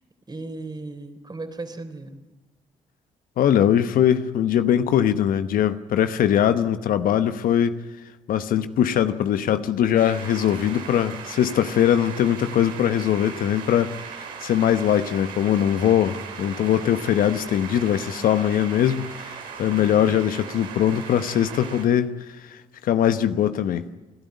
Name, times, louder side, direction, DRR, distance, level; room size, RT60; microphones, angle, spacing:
voice 1, 0.3-2.2, right 2 dB, 25° right, 3.4 m, -36 dB
voice 2, 3.4-7.7 8.3-22.1 22.4-23.9, left 10 dB, 65° left, 1.0 m, -21 dB
sound 1, 9.9-21.8, right 6 dB, 75° right, 3.8 m, -38 dB
29.0 x 12.5 x 9.5 m
hypercardioid pair, 50°, 15 cm